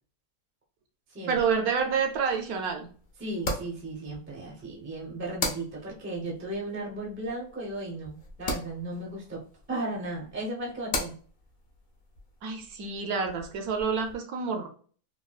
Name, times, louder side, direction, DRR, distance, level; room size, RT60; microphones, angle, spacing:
sound 1, 1.3-14.2, left 1 dB, 60° left, 0.5 m, -40 dB
voice 1, 1.3-2.9 12.4-14.7, right 5 dB, 75° right, 4 dB, 1.1 m, -28 dB
voice 2, 3.2-9.4 9.7-11.1, right 2 dB, 15° right, -2 dB, 0.4 m, -35 dB
3.6 x 2.2 x 2.3 m, 0.43 s
omnidirectional pair, 1.6 m